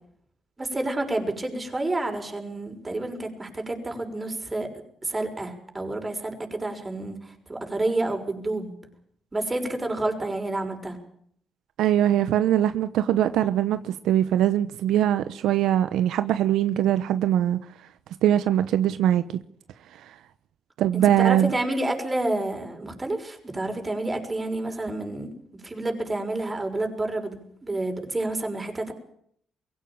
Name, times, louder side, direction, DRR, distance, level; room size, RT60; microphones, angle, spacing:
voice 1, 0.6-4.7 5.0-8.7 9.3-11.0 20.9-25.3 25.6-28.9, right 2 dB, 20° right, 6.2 m, -29 dB
voice 2, 11.8-17.6 18.2-19.2 20.8-21.5, right 11 dB, 80° right, 1.0 m, -22 dB
22.5 x 16.5 x 8.9 m
cardioid pair, 90°, 0 cm